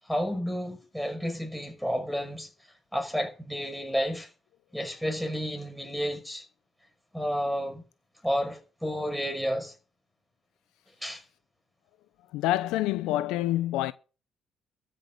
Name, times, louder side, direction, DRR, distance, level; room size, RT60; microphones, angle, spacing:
voice 1, 0.1-2.5 2.9-4.3 4.7-6.4 7.1-7.8 8.2-9.7 11.0-11.2, equal, ahead, 5.7 m, -31 dB
voice 2, 12.3-13.9, left 15 dB, 85° left, 0.7 m, -27 dB
14.0 x 6.6 x 9.2 m
supercardioid pair, 70°, 0 cm